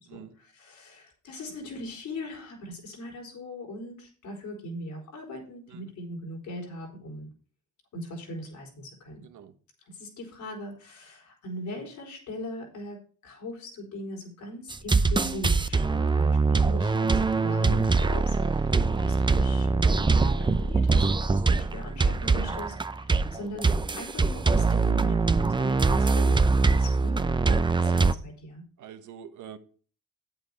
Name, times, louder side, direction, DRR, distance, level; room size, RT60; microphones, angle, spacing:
voice 1, 0.1-7.3 7.9-9.2 9.8-28.6, left 1 dB, 75° left, 4.5 m, -40 dB
voice 2, 9.2-9.5 18.6-19.0 28.8-29.6, right 9 dB, 80° right, 1.3 m, -45 dB
sound 1, 14.7-28.1, right 4 dB, 15° right, 0.6 m, -23 dB
9.2 x 7.8 x 4.9 m
cardioid pair, 90°, 30 cm